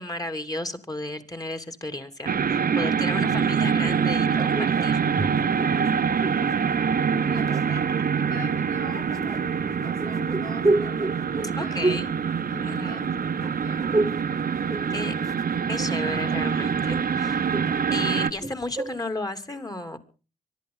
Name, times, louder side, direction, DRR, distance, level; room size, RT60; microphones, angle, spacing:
voice 1, 0.0-5.0 11.5-12.1 12.6-13.1 14.9-15.1 15.7-17.4 17.9-20.0, left 2 dB, 20° left, 6 dB, 3.0 m, -33 dB
sound 1, 2.3-18.3, right 6 dB, 55° right, 1.1 m, -25 dB
sound 2, 4.3-6.5 7.2-8.1 9.1-13.1 13.4-14.3 14.6-15.5 15.8-19.0, right 2 dB, 20° right, 1.5 m, -30 dB
voice 2, 5.8-11.8 12.5-14.1 14.7-15.8, left 3 dB, 55° left, 2 dB, 2.9 m, -44 dB
25.0 x 11.5 x 3.9 m, 0.35 s
supercardioid pair, 55°, 17 cm